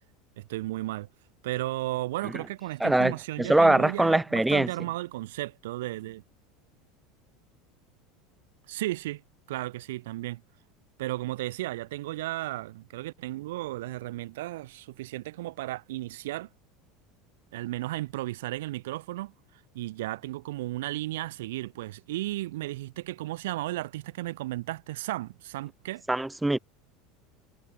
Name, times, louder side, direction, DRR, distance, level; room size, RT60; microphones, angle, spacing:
voice 1, 0.4-1.1 1.4-6.2 8.7-9.2 9.5-10.4 11.0-16.5 17.5-19.3 19.7-26.0, right 17 dB, 90° right, 6.1 m, -34 dB
voice 2, 2.8-4.7 26.1-26.6, right 2 dB, 5° right, 0.8 m, -23 dB
supercardioid pair, 135°, 0 cm